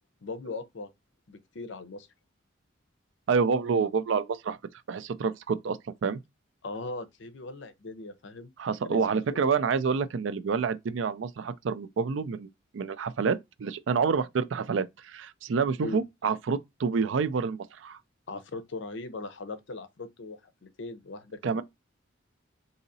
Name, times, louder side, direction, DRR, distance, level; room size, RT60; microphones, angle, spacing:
voice 1, 0.2-0.9 1.3-2.1 6.6-8.5 8.8-9.4 15.8-16.0 18.3-21.6, left 3 dB, 65° left, 0.6 m, -39 dB
voice 2, 3.3-4.6 4.9-6.2 8.6-12.5 12.7-18.0 21.4-21.6, right 5 dB, 70° right, 0.4 m, -28 dB
3.9 x 2.7 x 2.6 m
head